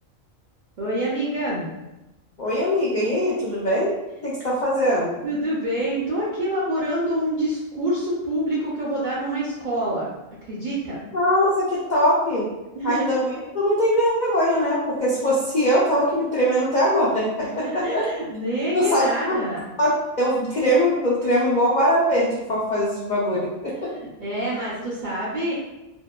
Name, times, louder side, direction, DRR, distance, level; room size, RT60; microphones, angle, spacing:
voice 1, 0.8-1.7 5.2-10.1 10.5-11.0 12.7-13.2 17.6-19.6 23.8-25.5, right 1 dB, 60° right, -8 dB, 0.5 m, -26 dB
voice 2, 2.4-3.9 4.2-5.2 11.1-12.5 12.8-18.0 18.7-19.0 19.8-19.9 20.2-23.5, equal, 70° left, -6 dB, 0.4 m, -21 dB
2.7 x 2.1 x 2.2 m, 0.99 s
omnidirectional pair, 1.4 m